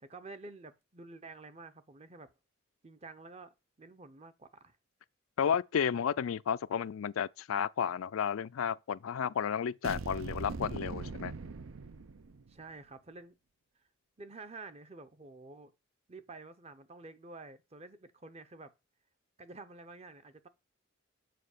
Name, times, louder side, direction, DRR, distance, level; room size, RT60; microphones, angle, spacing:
voice 1, 0.0-2.3 2.8-4.8 12.5-13.3 14.2-15.7 16.1-18.7 19.4-20.5, right 3 dB, 30° right, 0.7 m, -50 dB
voice 2, 5.4-11.3, left 7 dB, 80° left, 0.4 m, -32 dB
sound 1, 9.8-12.6, right 4 dB, 75° right, 0.6 m, -41 dB
7.7 x 5.1 x 6.5 m
head